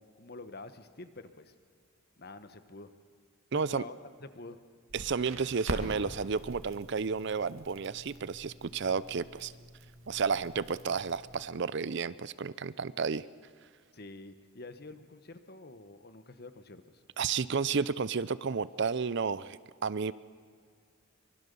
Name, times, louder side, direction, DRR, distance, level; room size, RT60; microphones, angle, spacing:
voice 1, 0.0-1.5 2.2-2.9 3.5-4.6 13.9-17.0, left 2 dB, 45° left, 10 dB, 1.3 m, -48 dB
voice 2, 3.5-3.8 4.9-9.5 10.1-13.2 17.2-20.1, right 5 dB, 55° right, 17 dB, 0.5 m, -32 dB
Crackle, 4.9-11.4, right 1 dB, 75° right, 2.2 m, -44 dB
24.5 x 23.0 x 6.9 m, 2.1 s
head